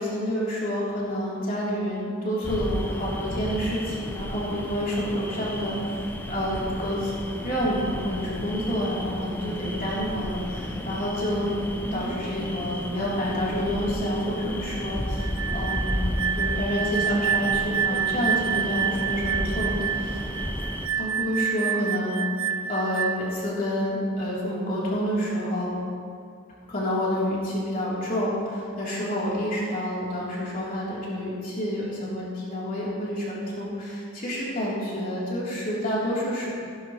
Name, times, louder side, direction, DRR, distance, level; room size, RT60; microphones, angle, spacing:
voice 1, 0.0-5.9 6.3-7.1 7.4-11.5 11.9-15.2 15.5-20.2 20.9-22.2 22.7-25.7 26.7-36.5, equal, 40° left, -7 dB, 3.4 m, -28 dB
sound 1, 2.4-20.9, equal, 10° left, 0.5 m, -33 dB
sound 2, 15.2-23.4, right 8 dB, 60° right, 0.5 m, -28 dB
16.0 x 11.0 x 3.1 m, 2.3 s
head